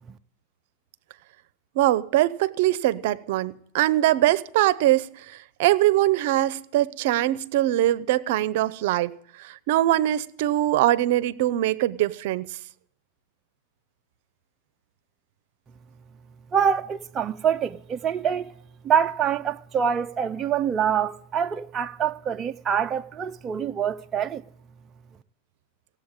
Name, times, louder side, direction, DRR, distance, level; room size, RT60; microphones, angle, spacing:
voice 1, 1.8-12.6, right 14 dB, 65° right, 0.7 m, -22 dB
voice 2, 16.5-18.5 18.8-24.4, right 8 dB, 25° right, 0.6 m, -25 dB
17.5 x 7.9 x 9.0 m
supercardioid pair, 135°, 0 cm